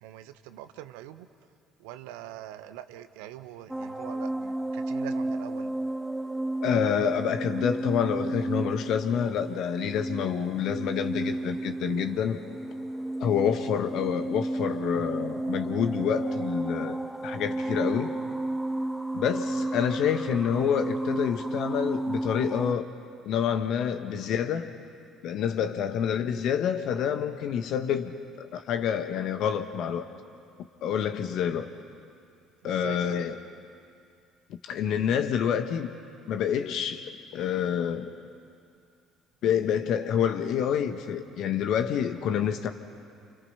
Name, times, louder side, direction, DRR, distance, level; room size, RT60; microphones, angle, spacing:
voice 1, 0.0-1.3 1.8-5.7 32.6-33.2, right 13 dB, 70° right, 10 dB, 1.2 m, -43 dB
sound 1, 3.7-22.7, right 2 dB, 5° right, 1.3 m, -32 dB
voice 2, 6.6-12.4 13.2-18.1 19.1-22.9 23.2-24.7 25.2-28.1 28.4-30.1 30.8-31.7 32.6-33.4 34.6-35.9 36.3-38.1 39.4-42.7, left 8 dB, 60° left, 8 dB, 1.7 m, -28 dB
30.0 x 29.0 x 5.9 m, 2.3 s
figure-of-eight pair, 55°, 0 cm